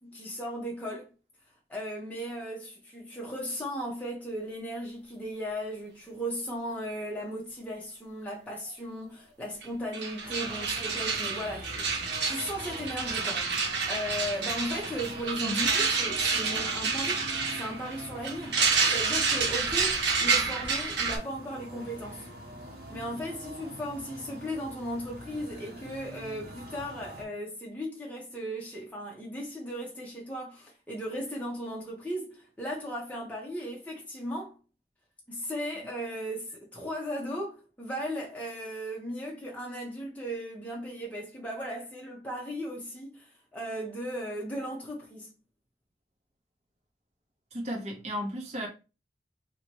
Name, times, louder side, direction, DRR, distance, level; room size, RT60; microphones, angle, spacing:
voice 1, 0.0-1.1 1.7-17.2 17.5-18.6 18.9-22.3 22.9-34.6 35.3-45.3, equal, 10° left, 0.9 m, -36 dB
sound 1, 9.6-9.7 9.9-21.2, right 4 dB, 80° right, 1.2 m, -29 dB
sound 2, 10.2-27.2, equal, 55° right, 1.5 m, -44 dB
voice 2, 15.4-15.7 47.5-48.7, equal, 40° right, 0.9 m, -34 dB
3.0 x 2.9 x 4.5 m
head